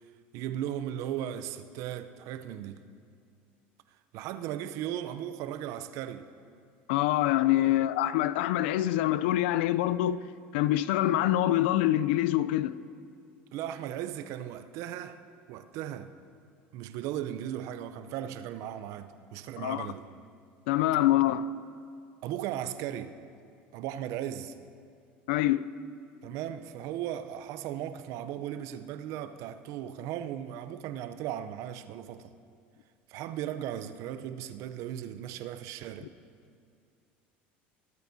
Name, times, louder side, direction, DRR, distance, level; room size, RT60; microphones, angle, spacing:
voice 1, 0.3-2.8 4.1-6.3 7.5-7.7 13.5-15.2 15.5-16.1 16.7-20.1 22.2-23.2 23.7-24.5 26.2-32.3 33.1-36.1, right 11 dB, 65° right, 0.6 m, -37 dB
voice 2, 6.9-10.2 10.5-12.7 19.6-19.9 20.7-21.5 25.3-25.7, left 14 dB, 80° left, 0.3 m, -25 dB
22.0 x 8.8 x 2.7 m
supercardioid pair, 95°, 6 cm